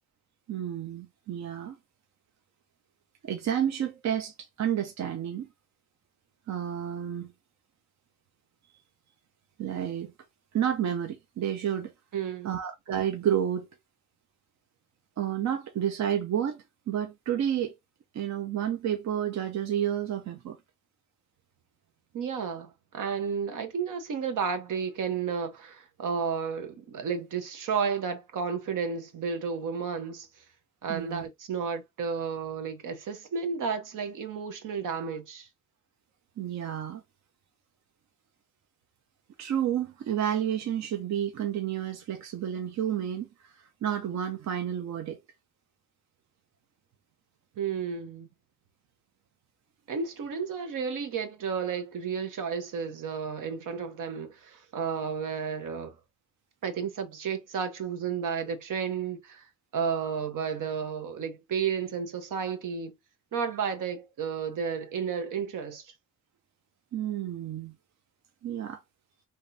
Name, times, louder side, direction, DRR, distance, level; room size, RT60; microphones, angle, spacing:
voice 1, 0.5-1.8 3.2-5.5 6.5-7.3 8.7-8.8 9.6-10.1 10.5-11.9 12.4-13.7 15.2-17.7 18.1-20.6 30.9-31.3 36.4-37.0 39.4-45.2 66.9-67.7 68.4-68.8, right 10 dB, 60° right, 0.6 m, -30 dB
voice 2, 12.1-12.5 22.1-30.3 30.8-35.5 47.6-48.3 49.9-56.0 56.6-59.5 59.7-62.9 63.3-65.9, right 6 dB, 75° right, 1.0 m, -32 dB
3.6 x 3.0 x 2.6 m
cardioid pair, 105°, 31 cm